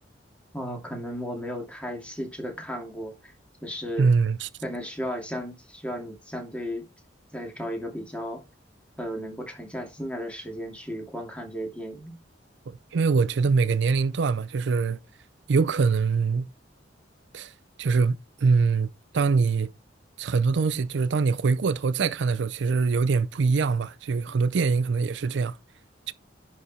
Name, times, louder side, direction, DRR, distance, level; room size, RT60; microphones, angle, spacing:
voice 1, 0.5-3.3 3.6-4.1 4.6-6.8 7.3-8.4 9.0-12.2, equal, 5° left, 2.5 m, -34 dB
voice 2, 4.0-4.5 12.7-15.0 15.5-16.5 17.3-17.5 17.8-18.9 19.1-19.7 20.2-25.6 26.1-26.2, right 4 dB, 65° right, 0.4 m, -23 dB
10.5 x 4.7 x 4.2 m
head